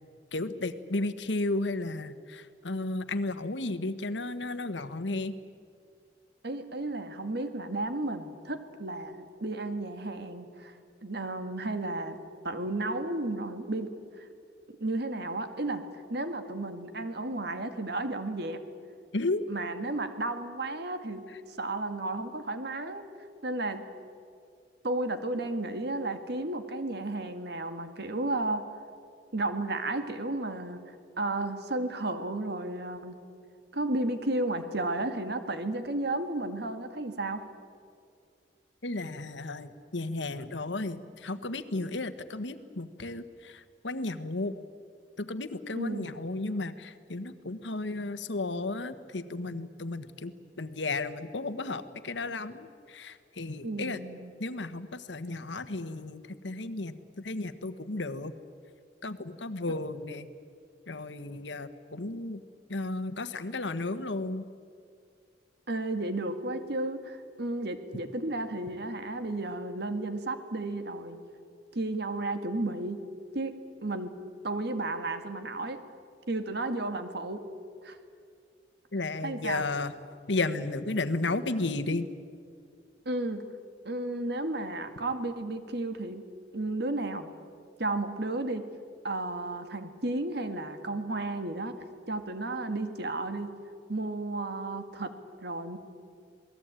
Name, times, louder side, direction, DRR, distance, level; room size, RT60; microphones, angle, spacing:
voice 1, 0.3-5.4 19.1-19.5 38.8-44.5 45.2-54.0 54.4-58.3 59.0-60.3 60.9-62.4 62.7-64.5 78.9-79.9 80.3-82.1, left 2 dB, 85° left, 11 dB, 1.3 m, -33 dB
voice 2, 6.4-12.2 12.4-13.9 14.2-14.3 14.8-15.8 16.1-18.6 19.5-23.1 23.4-23.9 24.8-28.6 29.3-33.2 33.7-37.4 45.8-46.1 53.6-54.3 65.7-71.2 71.7-73.0 73.3-74.1 74.4-75.8 76.3-77.4 77.8-78.0 79.0-79.6 83.1-83.5 83.8-86.2 86.5-87.3 87.8-88.6 89.0-91.7 92.1-93.5 93.9-95.1 95.4-95.8, right 2 dB, 65° right, 8 dB, 2.1 m, -33 dB
27.5 x 19.5 x 9.1 m, 2.3 s
head